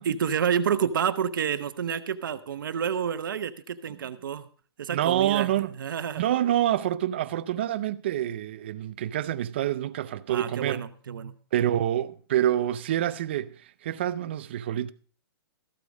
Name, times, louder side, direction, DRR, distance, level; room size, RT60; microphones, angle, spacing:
voice 1, 0.0-4.5 4.8-6.2 10.3-11.3, right 8 dB, 55° right, 0.9 m, -29 dB
voice 2, 4.9-5.7 6.2-10.8 11.5-13.5 13.8-14.9, right 12 dB, 25° right, 0.5 m, -27 dB
14.0 x 8.3 x 5.2 m
hypercardioid pair, 175°, 13 cm